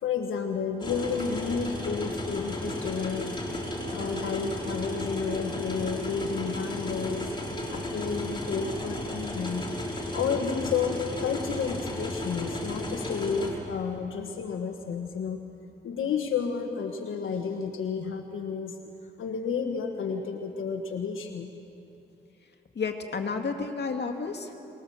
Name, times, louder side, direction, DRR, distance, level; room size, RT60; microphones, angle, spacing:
voice 1, 0.0-7.3 7.7-9.6 10.1-15.4 15.8-18.7 19.2-21.5, left 6 dB, 90° left, 4 dB, 1.4 m, -31 dB
sound 1, 0.8-13.5, left 1 dB, 25° left, 4.1 m, -34 dB
voice 2, 22.7-24.5, left 4 dB, 55° left, 4 dB, 2.2 m, -31 dB
24.5 x 20.0 x 7.2 m, 2.9 s
cardioid pair, 85°, 20 cm